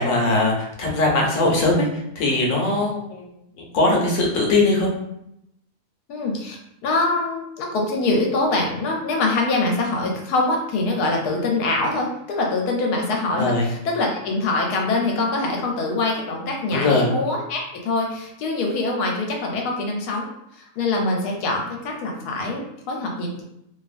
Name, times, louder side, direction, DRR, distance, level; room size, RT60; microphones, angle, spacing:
voice 1, 0.0-1.9 2.2-3.2 3.6-4.9 13.4-13.7 16.7-17.1, left 2 dB, 65° left, -1 dB, 1.0 m, -20 dB
voice 2, 6.1-6.6 6.8-20.3 20.5-23.4, left 2 dB, 85° left, 0 dB, 1.1 m, -24 dB
2.6 x 2.3 x 2.4 m, 0.79 s
omnidirectional pair, 1.6 m